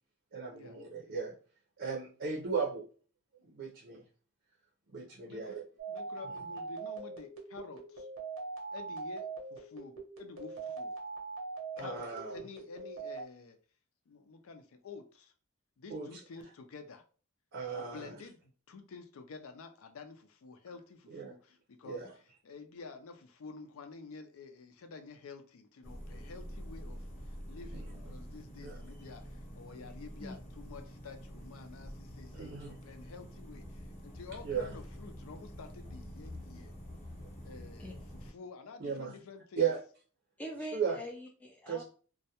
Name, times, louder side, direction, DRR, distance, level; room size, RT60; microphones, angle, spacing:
voice 1, 0.3-1.3 1.8-2.8 3.4-4.0 4.9-5.6 11.8-12.4 15.9-16.1 17.5-18.2 21.1-21.3 21.8-22.1 27.7-27.9 28.6-28.8 32.3-32.8 34.4-34.8 38.8-39.1 39.6-39.8 40.7-41.0 41.7-41.8, right 6 dB, 55° right, 0.5 m, -36 dB
voice 2, 5.2-5.6 5.9-8.1 8.7-10.9 11.8-13.6 14.1-15.3 15.8-17.0 17.7-36.7 37.4-39.7, left 4 dB, 80° left, 0.4 m, -50 dB
sound 1, 5.8-13.2, right 4 dB, 85° right, 0.8 m, -42 dB
sound 2, 25.8-38.3, equal, 30° left, 0.7 m, -47 dB
voice 3, 40.4-41.8, equal, 5° left, 0.3 m, -43 dB
2.2 x 2.1 x 2.8 m
head